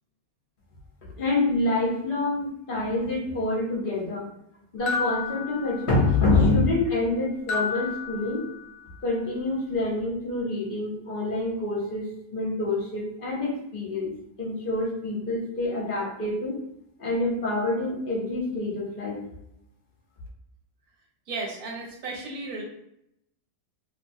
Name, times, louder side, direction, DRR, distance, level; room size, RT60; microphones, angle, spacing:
voice 1, 1.2-4.2 4.7-8.4 9.0-12.0 12.3-14.1 14.4-16.6 17.0-19.2, left 2 dB, 45° left, -3 dB, 0.9 m, -26 dB
sound 1, 4.9-6.3 7.5-8.9, left 5 dB, 65° left, 0.8 m, -32 dB
voice 2, 21.3-22.6, right 3 dB, 80° right, -1 dB, 1.3 m, -34 dB
3.0 x 2.2 x 2.6 m, 0.78 s
omnidirectional pair, 1.5 m